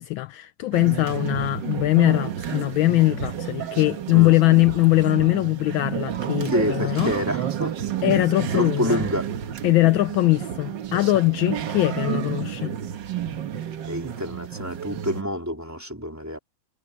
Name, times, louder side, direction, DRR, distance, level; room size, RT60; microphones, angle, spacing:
voice 1, 0.0-7.1 8.0-9.0 9.6-12.7, left 19 dB, 75° left, 1.3 m, -21 dB
sound 1, 0.7-15.2, right 10 dB, 65° right, 1.7 m, -31 dB
voice 2, 6.5-7.9 8.5-9.3 13.8-16.4, equal, 5° right, 3.6 m, -27 dB
omnidirectional pair, 2.3 m